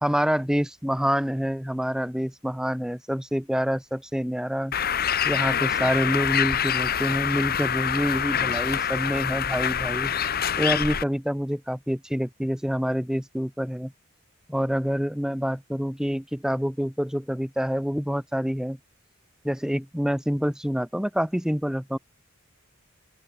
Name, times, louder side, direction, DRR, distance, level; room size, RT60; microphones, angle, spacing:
voice 1, 0.0-4.8 5.2-10.1 10.6-13.9 14.5-18.8 19.4-22.0, equal, 5° right, 1.3 m, -27 dB
Bird, 4.7-11.0, left 8 dB, 45° left, 1.2 m, -25 dB
open air
head